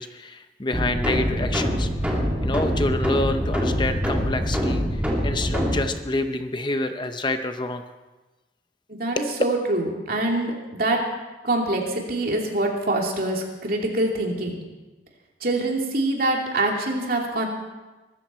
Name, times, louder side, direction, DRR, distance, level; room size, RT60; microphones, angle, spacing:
voice 1, 0.0-7.8 9.2-9.3, left 2 dB, 25° left, 8 dB, 0.7 m, -28 dB
sound 1, 0.7-5.8, equal, 5° right, 2.5 m, -24 dB
voice 2, 8.9-11.0 11.4-14.6 15.4-17.5, right 2 dB, 50° right, 0 dB, 2.8 m, -25 dB
23.0 x 13.5 x 4.4 m, 1.2 s
head